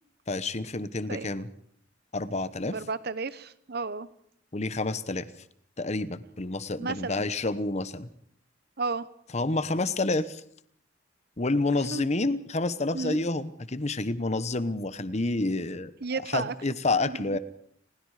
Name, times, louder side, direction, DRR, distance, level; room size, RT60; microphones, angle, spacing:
voice 1, 0.3-1.5 2.1-2.7 4.5-5.3 5.8-8.1 9.3-10.4 11.4-15.9 16.3-17.4, left 2 dB, 35° left, 14 dB, 1.1 m, -29 dB
voice 2, 2.6-4.1 6.8-7.2 8.8-9.1 11.9-12.1 12.9-13.2 16.0-16.5 16.9-17.4, right 4 dB, 55° right, 16 dB, 1.0 m, -33 dB
30.0 x 21.0 x 5.0 m, 0.66 s
head